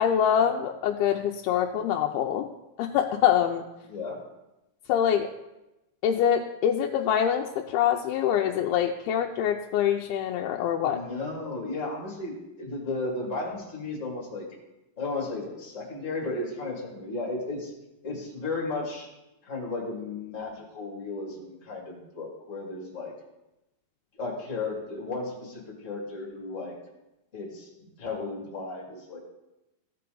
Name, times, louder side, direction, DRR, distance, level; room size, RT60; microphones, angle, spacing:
voice 1, 0.0-2.5 2.8-3.6 4.9-5.3 6.0-11.0, left 9 dB, 80° left, 1 dB, 2.4 m, -25 dB
voice 2, 3.9-4.2 10.8-14.4 15.0-17.7 18.0-19.1 19.4-23.1 24.2-26.7 27.3-29.2, left 3 dB, 30° left, -3 dB, 1.7 m, -34 dB
16.0 x 5.6 x 3.9 m, 0.96 s
omnidirectional pair, 4.7 m